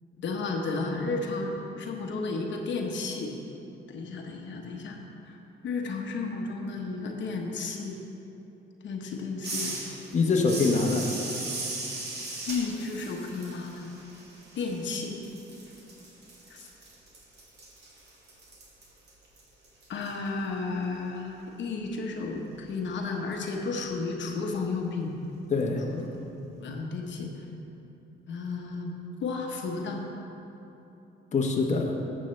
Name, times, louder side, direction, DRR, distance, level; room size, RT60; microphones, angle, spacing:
voice 1, 0.2-3.3 3.9-5.0 5.3-5.4 5.6-8.0 8.8-9.7 12.4-13.9 14.6-15.2 16.5-16.7 19.9-25.2 25.9-26.2 26.6-27.4 28.3-28.9 29.2-30.0, left 3 dB, 65° left, 1 dB, 1.1 m, -33 dB
sound 1, 9.4-15.0 15.2-20.1, right 2 dB, 55° right, 2.2 m, -38 dB
voice 2, 10.1-11.1 25.5-25.8 31.3-32.0, left 4 dB, 35° left, 1 dB, 1.0 m, -24 dB
12.5 x 7.4 x 3.2 m, 3.0 s
cardioid pair, 90°, 20 cm